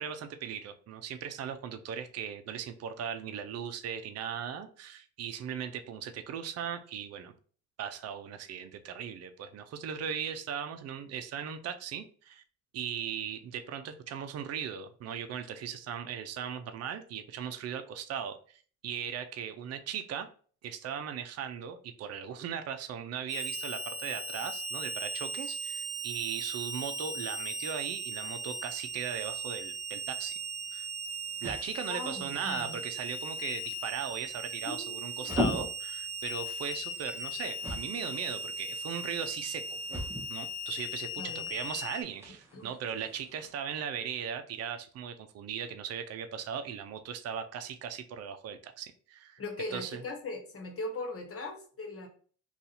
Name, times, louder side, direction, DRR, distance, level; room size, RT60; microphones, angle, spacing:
voice 1, 0.0-7.3 7.8-12.4 12.7-20.3 20.6-30.4 30.7-30.9 31.4-49.4 49.7-50.0, right 8 dB, 55° right, 7 dB, 0.5 m, -38 dB
Harmonica, 23.3-42.0, right 1 dB, 20° left, 1.2 m, -38 dB
sound 1, 30.1-43.5, left 1 dB, 10° right, 0.8 m, -41 dB
voice 2, 31.9-32.8 34.6-35.3 41.2-41.5 42.5-42.7 49.4-52.1, left 2 dB, 50° left, 3 dB, 1.1 m, -39 dB
2.7 x 2.4 x 4.0 m, 0.43 s
cardioid pair, 90°, 30 cm